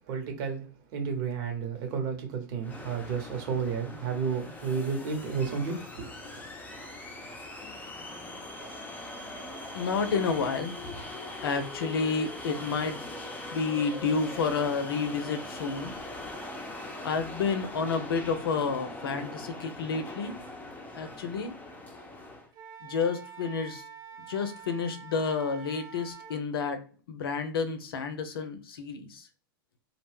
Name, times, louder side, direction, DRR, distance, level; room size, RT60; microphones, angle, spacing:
voice 1, 0.1-0.7 0.9-6.3, right 6 dB, 55° right, 1.1 m, -32 dB
sound 1, 2.6-22.5, left 2 dB, 15° left, 0.6 m, -41 dB
voice 2, 9.7-10.7 11.4-13.1 13.5-15.9 17.0-20.3 20.9-21.5 22.8-23.8 24.3-26.8 27.1-29.2, left 5 dB, 80° left, 0.6 m, -30 dB
Wind instrument woodwind instrument, 22.5-26.4, right 7 dB, 30° right, 0.8 m, -47 dB
2.3 x 2.1 x 3.4 m
hypercardioid pair, 100°, 12 cm